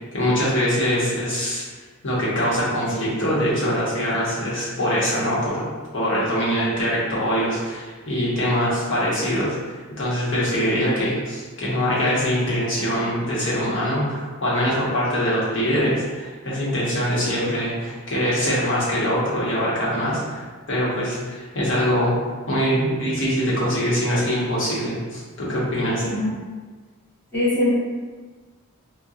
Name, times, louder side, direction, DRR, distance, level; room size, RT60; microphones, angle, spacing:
voice 1, 0.1-1.6 2.0-5.7 5.9-22.1 22.5-26.0, equal, 55° left, -7 dB, 1.0 m, -23 dB
voice 2, 27.3-27.7, left 1 dB, 10° left, -14 dB, 1.1 m, -22 dB
4.1 x 2.2 x 2.4 m, 1.4 s
head